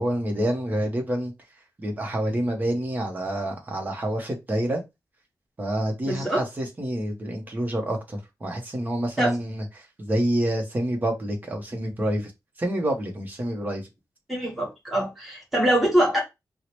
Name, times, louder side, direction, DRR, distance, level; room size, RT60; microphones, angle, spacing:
voice 1, 0.0-1.3 1.8-4.8 5.6-12.3 12.6-13.8, right 1 dB, 25° right, 0.8 m, -27 dB
voice 2, 6.0-6.4 9.2-9.3 14.3-16.2, right 1 dB, ahead, 1.3 m, -23 dB
4.5 x 2.0 x 3.0 m
wide cardioid pair, 170°, 7 cm